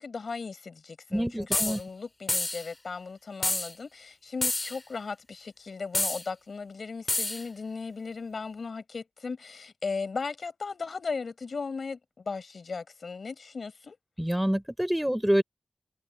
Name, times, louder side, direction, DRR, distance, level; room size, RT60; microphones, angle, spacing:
voice 1, 0.0-14.0, left 4 dB, 75° left, 4.4 m, -37 dB
voice 2, 1.1-1.8 14.2-15.4, equal, 5° right, 3.8 m, -26 dB
sound 1, 1.5-1.8 2.3-2.7 3.4-3.7 4.4-4.8 5.9-6.2 7.1-7.4, left 2 dB, 30° left, 2.0 m, -28 dB
wide cardioid pair, 70°, 0 cm